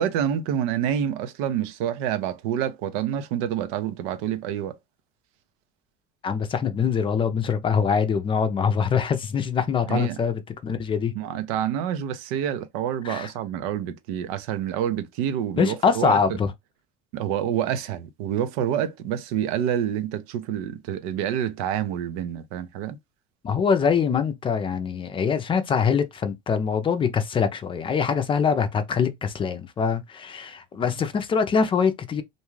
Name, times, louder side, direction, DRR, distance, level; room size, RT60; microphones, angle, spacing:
voice 1, 0.0-4.8 9.9-10.2 11.1-16.2 17.1-23.0, right 10 dB, 75° right, 0.6 m, -27 dB
voice 2, 6.2-11.1 13.0-13.3 15.6-16.5 23.4-32.2, left 6 dB, 25° left, 0.5 m, -24 dB
2.6 x 2.3 x 3.1 m
supercardioid pair, 115°, 19 cm